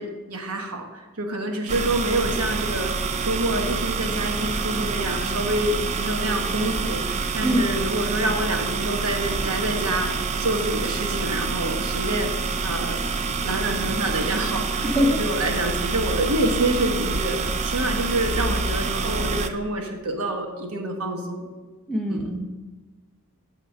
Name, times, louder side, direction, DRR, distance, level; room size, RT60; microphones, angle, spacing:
voice 1, 0.0-21.5 22.1-22.3, right 1 dB, 85° right, 3 dB, 1.1 m, -27 dB
sound 1, 1.7-19.5, right 4 dB, 30° right, 0.3 m, -27 dB
voice 2, 21.9-22.4, left 1 dB, ahead, 0 dB, 0.7 m, -22 dB
6.4 x 4.5 x 6.3 m, 1.3 s
head